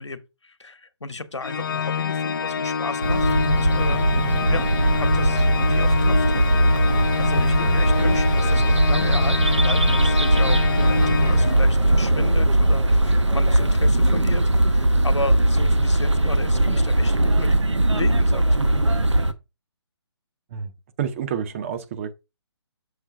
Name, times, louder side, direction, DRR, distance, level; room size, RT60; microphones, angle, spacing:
voice 1, 0.0-4.1 4.5-4.7 5.0-6.8 7.2-17.6 17.9-18.8, left 3 dB, 75° left, 1.1 m, -34 dB
Organ, 1.4-12.0, left 6 dB, 50° left, 0.4 m, -27 dB
sound 1, 3.0-19.3, right 1 dB, 85° right, 1.0 m, -19 dB
voice 2, 21.0-22.1, right 8 dB, 30° right, 0.7 m, -28 dB
6.7 x 5.3 x 4.7 m
figure-of-eight pair, 140°, 15 cm